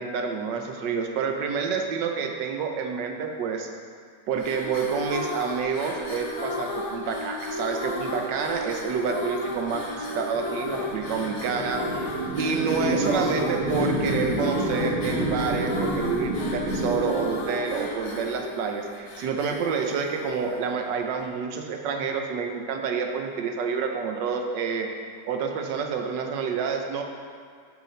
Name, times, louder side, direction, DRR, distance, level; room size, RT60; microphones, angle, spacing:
voice 1, 0.0-3.7 4.3-12.1 12.4-24.9 25.3-27.0, right 5 dB, 75° right, 4 dB, 1.4 m, -28 dB
sound 1, 4.3-20.8, left 1 dB, 45° left, 1.2 m, -34 dB
sound 2, 9.2-18.0, right 1 dB, 50° right, 1.5 m, -29 dB
7.5 x 4.8 x 5.0 m, 2.1 s
omnidirectional pair, 2.0 m